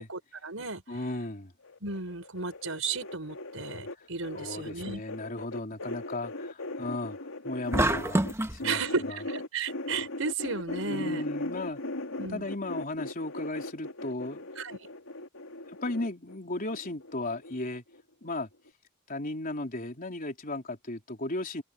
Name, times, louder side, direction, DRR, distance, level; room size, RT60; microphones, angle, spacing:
voice 1, 0.0-0.8 1.8-5.0 8.6-11.2 12.2-12.4 14.6-14.8, right 4 dB, 75° right, 5.5 m, -34 dB
voice 2, 0.9-1.5 3.9-4.1 4.3-7.2 7.4-8.2 8.5-9.2 10.9-11.8 12.3-14.5 15.7-17.8 18.2-18.5 19.1-21.6, left 2 dB, 45° left, 3.8 m, -35 dB
sound 1, 1.6-8.3 8.6-17.6 17.9-18.4 18.7-18.8, left 2 dB, 90° left, 3.2 m, -39 dB
sound 2, 7.7-8.6, right 1 dB, 15° right, 1.5 m, -26 dB
head